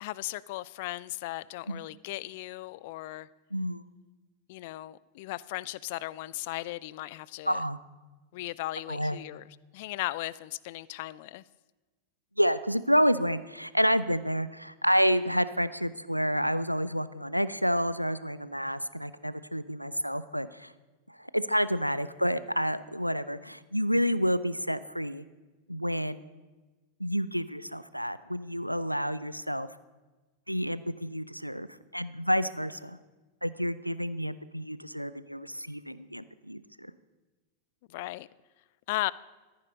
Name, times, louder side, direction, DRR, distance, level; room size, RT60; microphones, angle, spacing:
voice 1, 0.0-3.3 4.5-7.6 8.3-11.4 37.9-38.3 38.9-39.1, left 18 dB, 50° left, 21 dB, 0.3 m, -37 dB
voice 2, 3.5-3.8 7.5-7.8 8.9-9.2 12.4-20.7 21.1-25.2 25.7-26.2 27.0-29.7 30.5-33.0 33.4-36.9, equal, 90° right, 15 dB, 0.4 m, -29 dB
14.0 x 9.6 x 5.2 m, 1.2 s
figure-of-eight pair, 90°, 0 cm